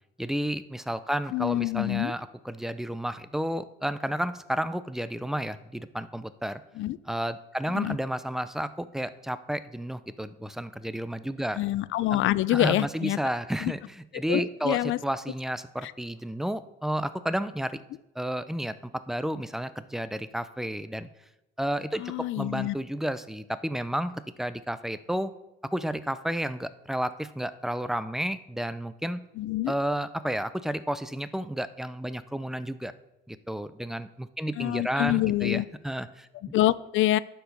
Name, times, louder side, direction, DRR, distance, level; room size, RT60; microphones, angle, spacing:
voice 1, 0.2-6.6 7.1-11.6 12.5-17.8 18.2-21.1 21.6-24.1 24.4-25.3 25.7-29.2 29.7-32.9 33.3-36.5, right 1 dB, ahead, 13 dB, 0.5 m, -31 dB
voice 2, 1.3-2.1 6.8-7.0 7.7-8.0 11.6-13.2 13.6-13.7 14.3-15.0 15.8-15.9 22.0-22.8 29.4-29.7 34.6-35.6 36.5-37.2, left 15 dB, 80° left, 18 dB, 0.4 m, -26 dB
11.5 x 4.8 x 5.3 m, 0.91 s
cardioid pair, 90°, 20 cm